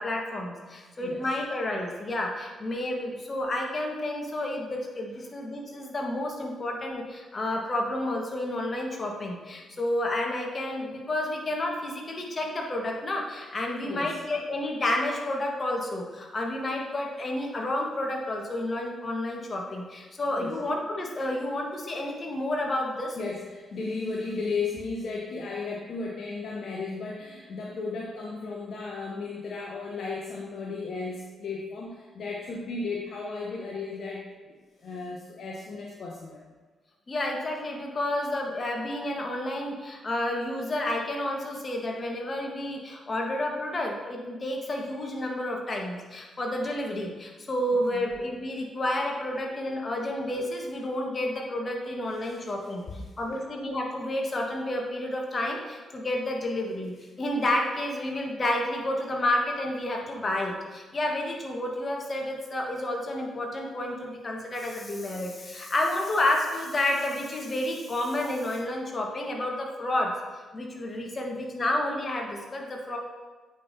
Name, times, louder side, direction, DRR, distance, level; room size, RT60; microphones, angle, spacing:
voice 1, 0.0-23.2 37.1-52.8 53.2-70.1 70.5-73.0, left 1 dB, 40° left, 0 dB, 1.5 m, -30 dB
voice 2, 13.8-14.2 20.4-20.5 23.2-36.3 47.7-48.1 49.4-49.5 52.2-52.5 53.3-53.4, left 4 dB, 60° left, -3 dB, 0.9 m, -35 dB
8.4 x 5.3 x 2.8 m, 1.3 s
hypercardioid pair, 40°, 0 cm